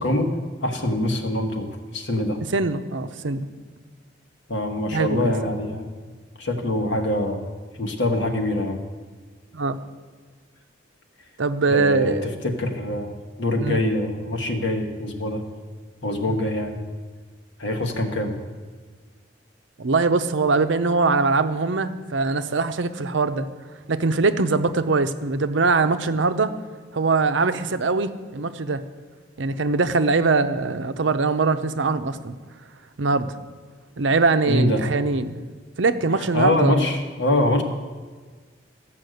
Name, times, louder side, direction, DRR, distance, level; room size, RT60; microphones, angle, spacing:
voice 1, 0.0-2.4 4.5-5.9 6.4-8.8 11.7-15.5 16.0-16.8 17.6-18.4 34.5-34.9 36.2-37.6, left 1 dB, 75° left, 3 dB, 1.5 m, -24 dB
voice 2, 2.5-3.5 4.9-5.3 9.5-9.8 11.4-12.3 13.6-13.8 16.3-16.4 19.8-23.5 23.9-26.5 26.9-28.8 29.4-32.4 33.0-33.4 34.0-35.4 35.8-36.9, right 3 dB, 75° right, 10 dB, 0.7 m, -22 dB
14.5 x 5.8 x 7.9 m, 1.5 s
head